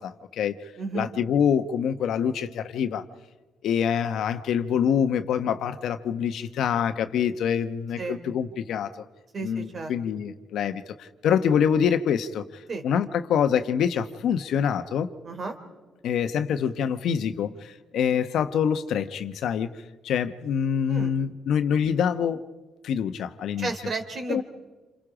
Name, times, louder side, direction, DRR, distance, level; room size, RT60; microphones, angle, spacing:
voice 1, 0.0-0.6 0.9-3.0 3.6-9.0 9.4-15.1 16.0-19.7 20.0-22.4 22.8-23.7 24.3-24.4, left 8 dB, 75° left, 10 dB, 1.0 m, -25 dB
voice 2, 0.8-1.1 8.0-8.2 9.3-9.9 12.7-12.8 15.2-15.5 20.9-21.1 23.6-24.4, right 3 dB, 45° right, 6 dB, 3.4 m, -32 dB
28.0 x 27.0 x 5.0 m, 1.3 s
cardioid pair, 90°, 0 cm